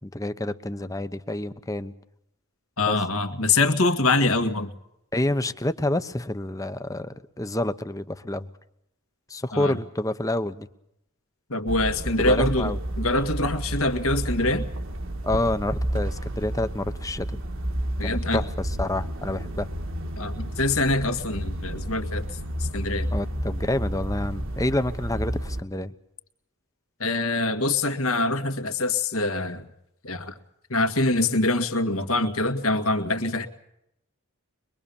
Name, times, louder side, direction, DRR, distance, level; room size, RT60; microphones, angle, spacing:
voice 1, 0.0-1.9 2.9-3.0 5.1-8.5 9.3-10.7 12.2-12.8 15.2-17.4 18.0-19.7 23.1-25.9, left 1 dB, 15° left, 11 dB, 0.9 m, -28 dB
voice 2, 2.8-4.7 9.5-9.8 11.5-14.7 18.0-18.4 20.2-22.3 22.6-23.1 27.0-29.7 30.0-30.4 30.7-33.5, left 2 dB, 70° left, 8 dB, 2.1 m, -24 dB
sound 1, 11.7-25.6, right 1 dB, 60° right, 1.7 m, -31 dB
23.5 x 23.0 x 7.1 m, 0.78 s
head